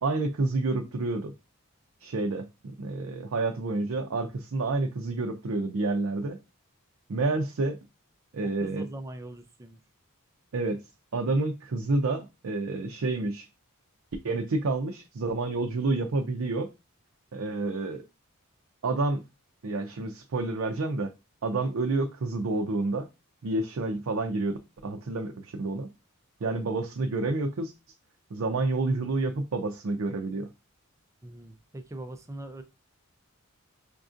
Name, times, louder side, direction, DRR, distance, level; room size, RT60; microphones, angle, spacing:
voice 1, 0.0-1.3 2.0-6.4 7.1-7.8 8.3-8.8 10.5-10.8 11.1-13.5 14.2-16.7 17.3-18.0 18.8-19.2 19.6-21.1 21.4-23.1 23.4-25.9 26.4-27.7 28.3-30.5, right 3 dB, 70° right, 3 dB, 0.5 m, -29 dB
voice 2, 8.4-9.8 26.4-26.6 31.2-32.6, right 1 dB, 15° right, 7 dB, 0.4 m, -42 dB
5.1 x 2.5 x 2.4 m, 0.26 s
head